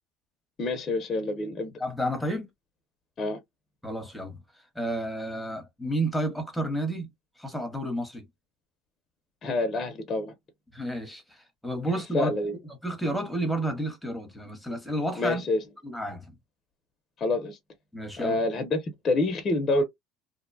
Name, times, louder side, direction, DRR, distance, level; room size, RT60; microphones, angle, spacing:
voice 1, 0.6-1.7 3.2-3.4 9.4-10.3 12.1-12.5 15.2-15.6 17.2-17.6 18.2-19.8, left 2 dB, 35° left, 0.7 m, -27 dB
voice 2, 1.8-2.5 3.8-4.4 4.7-7.1 7.4-8.3 10.7-12.3 12.8-15.4 15.8-16.4 17.9-18.4, right 1 dB, ahead, 1.0 m, -31 dB
2.6 x 2.2 x 2.6 m
supercardioid pair, 110°, 0 cm